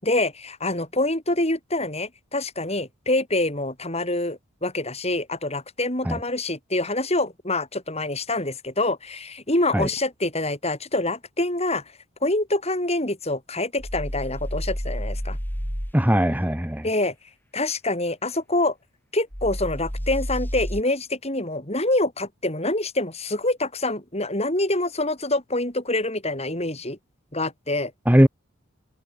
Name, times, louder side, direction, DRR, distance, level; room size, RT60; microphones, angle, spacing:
voice 1, 0.0-11.8 12.2-15.4 16.8-17.1 17.5-18.7 19.1-27.0 27.3-27.9, left 2 dB, 30° left, 7.8 m, -26 dB
sound 1, 13.8-15.9 19.3-20.8, equal, 10° left, 4.7 m, -30 dB
voice 2, 15.9-16.9 28.1-28.3, equal, 10° right, 1.3 m, -19 dB
head